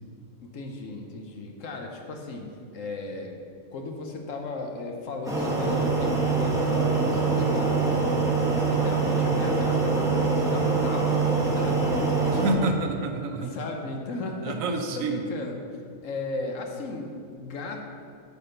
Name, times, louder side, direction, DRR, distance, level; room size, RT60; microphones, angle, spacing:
voice 1, 0.4-3.3 3.7-7.7 8.4-12.4 13.4-14.6 14.9-15.6 16.0-17.8, left 2 dB, 75° left, 3 dB, 1.3 m, -36 dB
sound 1, 5.2-12.5, right 4 dB, 5° right, 1.1 m, -24 dB
voice 2, 12.3-13.5 14.4-15.2, right 2 dB, 80° right, 4 dB, 1.2 m, -28 dB
8.7 x 4.1 x 6.5 m, 2.2 s
omnidirectional pair, 1.4 m